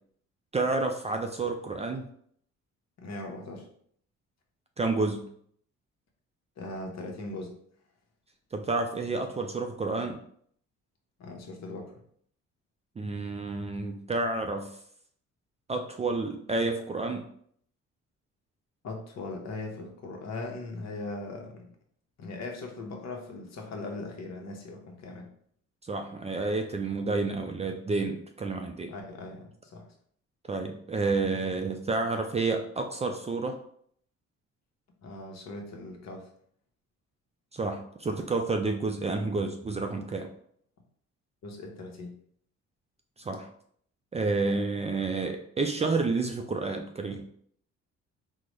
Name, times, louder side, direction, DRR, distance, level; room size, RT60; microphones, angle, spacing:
voice 1, 0.5-2.1 4.8-5.3 8.5-10.2 13.0-14.8 15.7-17.3 25.8-28.9 30.5-33.5 37.5-40.3 43.2-43.5 44.1-47.3, right 3 dB, 20° right, 4 dB, 0.3 m, -30 dB
voice 2, 3.0-3.7 6.6-7.6 11.2-12.0 18.8-21.7 22.2-25.3 28.9-29.8 35.0-36.3 41.4-42.1, left 2 dB, 60° left, 2 dB, 0.9 m, -39 dB
3.7 x 2.1 x 3.0 m, 0.64 s
cardioid pair, 90°, 30 cm